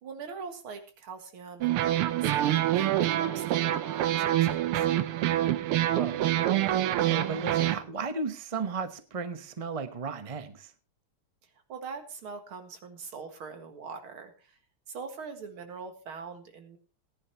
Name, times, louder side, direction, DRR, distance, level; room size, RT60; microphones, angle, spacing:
voice 1, 0.0-4.9 11.7-14.3 14.9-16.8, right 5 dB, 75° right, 6 dB, 2.6 m, -42 dB
sound 1, 1.6-7.8, right 13 dB, 90° right, 1.7 m, -26 dB
voice 2, 5.9-6.3 6.9-10.7, right 4 dB, 50° right, 9 dB, 0.4 m, -35 dB
18.5 x 10.5 x 2.9 m, 0.35 s
omnidirectional pair, 2.4 m